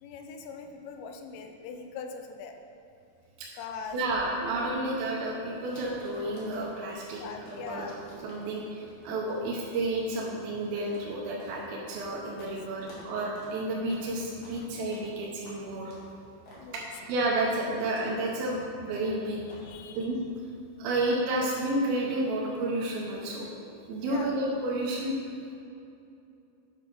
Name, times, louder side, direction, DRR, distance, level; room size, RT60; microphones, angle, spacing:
voice 1, 0.0-2.6 3.5-4.0 4.5-4.6 7.2-8.0 16.6-16.9 19.6-20.1 24.0-24.3, left 5 dB, 85° left, 5 dB, 3.3 m, -41 dB
sound 1, 3.8-12.1 12.4-12.5 12.8-13.1 13.4-13.5 13.9-14.1 14.4-14.6 14.9-15.1 15.4-15.6 15.9-16.1 16.5-16.6 16.9-17.1 17.5-17.6 17.9-18.1 18.4-18.6 18.9-19.1 19.5-19.7, left 1 dB, 50° left, 2.8 m, -51 dB
voice 2, 3.9-7.9 8.2-15.9 16.7-16.8 17.1-19.6 20.0-20.2 20.8-23.5 23.9-25.1, right 1 dB, 80° right, -3 dB, 2.1 m, -31 dB
8.3 x 6.4 x 5.4 m, 2.7 s
omnidirectional pair, 5.7 m